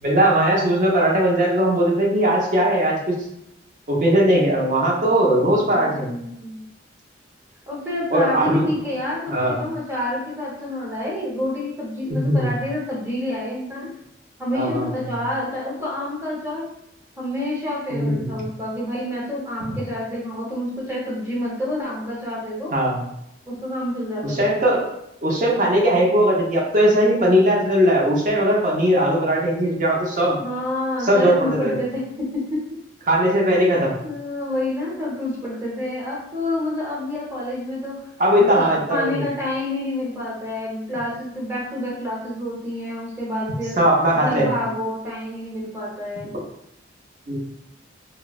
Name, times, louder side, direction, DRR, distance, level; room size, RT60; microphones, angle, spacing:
voice 1, 0.0-3.2 3.9-6.1 8.1-8.6 9.3-9.6 12.1-12.5 14.5-14.9 17.9-18.3 22.7-23.0 24.2-24.9 25.2-30.4 31.0-31.8 33.1-33.9 38.2-39.2 43.8-44.5 47.3-47.5, equal, 45° right, -2 dB, 0.6 m, -19 dB
voice 2, 5.7-6.6 7.7-13.9 14.4-16.7 17.2-22.7 23.5-24.5 30.4-32.6 34.0-38.0 38.4-43.8 44.2-46.4, left 1 dB, 15° right, -5 dB, 0.8 m, -28 dB
3.0 x 2.0 x 2.3 m, 0.80 s
head